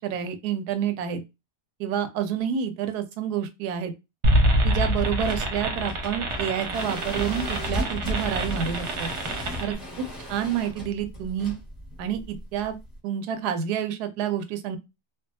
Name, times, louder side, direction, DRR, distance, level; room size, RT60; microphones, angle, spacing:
voice 1, 0.0-1.2 1.8-3.9 4.6-9.1 9.6-9.8 10.3-11.5 12.0-12.8 13.0-14.8, right 8 dB, 90° right, 1.1 m, -28 dB
sound 1, 4.2-9.7, right 1 dB, 60° right, 0.8 m, -26 dB
sound 2, 5.1-13.0, equal, ahead, 1.1 m, -35 dB
2.6 x 2.3 x 2.6 m
omnidirectional pair, 1.6 m